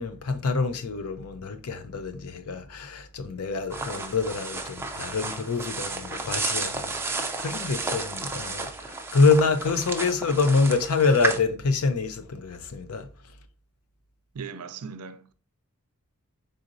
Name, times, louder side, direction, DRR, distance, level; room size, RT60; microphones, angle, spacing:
voice 1, 0.0-8.7 9.1-13.1, left 4 dB, 75° left, 0.5 m, -26 dB
sound 1, 3.7-11.4, right 3 dB, 10° right, 0.3 m, -32 dB
voice 2, 14.3-15.3, right 5 dB, 80° right, 0.5 m, -38 dB
4.1 x 3.8 x 2.5 m
head